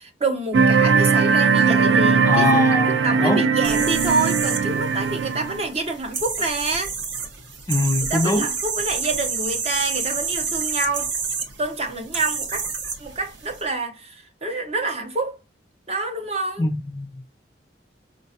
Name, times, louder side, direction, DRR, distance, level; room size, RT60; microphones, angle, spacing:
voice 1, 0.0-6.9 8.1-11.1 11.6-12.7 13.0-15.4 15.9-16.6, right 3 dB, 35° right, 0.6 m, -27 dB
sound 1, 0.5-5.6, right 5 dB, 85° right, 0.4 m, -19 dB
voice 2, 2.2-3.5 7.7-8.5 16.6-17.3, left 2 dB, 20° left, 0.3 m, -23 dB
sound 2, 3.6-13.6, right 5 dB, 70° right, 0.8 m, -29 dB
4.8 x 2.2 x 2.7 m
head